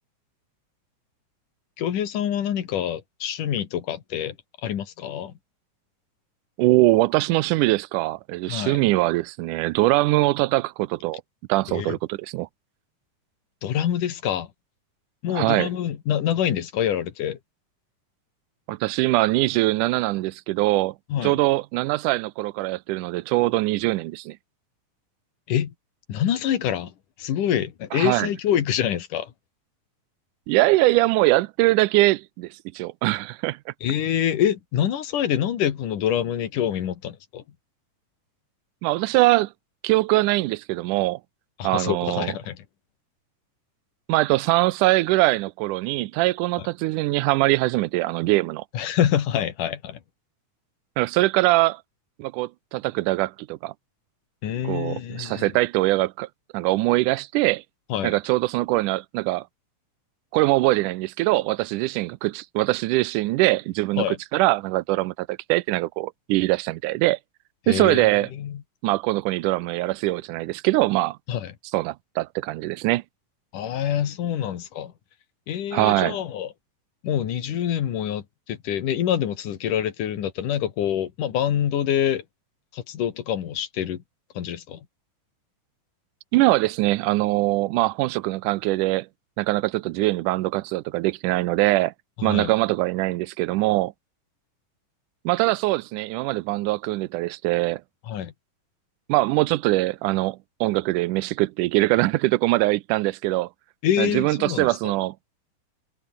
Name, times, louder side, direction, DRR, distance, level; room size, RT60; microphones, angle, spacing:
voice 1, 1.8-4.4 4.6-5.3 8.5-8.8 11.7-12.0 13.6-14.5 15.2-17.4 21.1-21.4 25.5-25.7 26.1-26.9 27.2-29.3 33.8-37.4 41.6-42.6 48.7-50.0 54.4-55.5 57.9-58.2 64.0-64.2 67.7-68.6 71.3-71.5 73.5-74.9 75.5-76.5 77.0-82.2 82.7-84.0 84.4-84.8 92.2-92.5 98.1-98.3 103.8-104.9, left 10 dB, 90° left, 3.5 m, -26 dB
voice 2, 6.6-11.2 11.5-12.5 15.3-15.7 18.7-21.0 21.2-24.4 27.9-28.3 30.5-33.7 38.8-39.5 39.8-41.2 41.6-42.4 44.1-48.6 51.0-51.8 52.2-53.7 54.6-56.3 56.5-57.6 58.0-59.5 60.3-67.2 67.7-68.3 68.8-71.2 71.7-73.0 75.7-76.2 86.3-89.1 89.4-91.9 92.2-93.9 95.3-97.8 99.1-103.5 104.0-105.2, right 19 dB, 85° right, 2.2 m, -22 dB
omnidirectional pair, 3.5 m